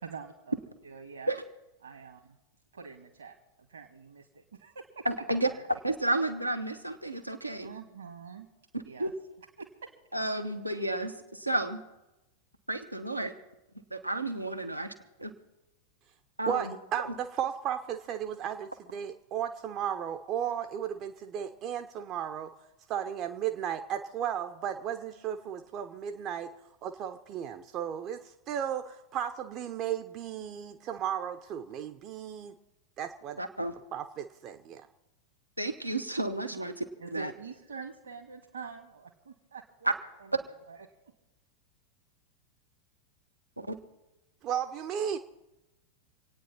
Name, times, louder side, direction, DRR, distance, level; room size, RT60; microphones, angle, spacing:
voice 1, 0.0-0.5 0.8-1.3 1.8-2.2 2.7-3.4 3.7-5.1 5.4-5.6 7.6-8.5 8.8-9.1 9.8-9.9 36.5-36.6 37.0-39.9 40.4-40.8, right 5 dB, 70° right, 1 dB, 1.8 m, -45 dB
voice 2, 5.0-5.5 5.8-7.7 8.7-9.1 10.1-11.8 12.7-13.3 13.9-14.9 15.2-15.3 16.4-16.7 33.4-33.7 35.6-36.8 37.1-37.3 39.8-39.9 43.6-43.8, right 2 dB, 85° right, 5 dB, 1.2 m, -31 dB
voice 3, 16.5-22.5 22.9-26.5 26.8-32.6 33.0-33.4 33.9-34.9 44.4-45.2, right 9 dB, 35° right, 6 dB, 0.8 m, -35 dB
27.0 x 9.4 x 4.3 m, 1.0 s
figure-of-eight pair, 90°, 0 cm